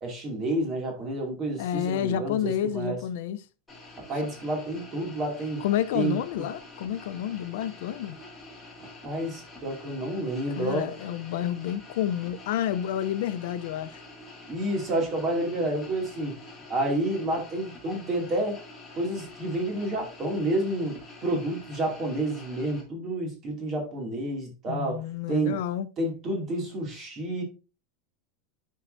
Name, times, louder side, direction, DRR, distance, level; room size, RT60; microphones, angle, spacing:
voice 1, 0.0-3.0 4.1-5.6 5.9-6.2 9.0-10.9 14.5-16.3 16.7-18.6 19.0-25.6 26.0-27.4, right 1 dB, 25° right, 2.4 m, -29 dB
voice 2, 1.6-3.4 5.6-8.2 10.5-14.0 24.7-25.9, left 10 dB, 65° left, 0.5 m, -29 dB
sound 1, 3.7-22.8, left 2 dB, 5° left, 2.1 m, -47 dB
10.0 x 4.5 x 2.6 m
supercardioid pair, 170°, 0 cm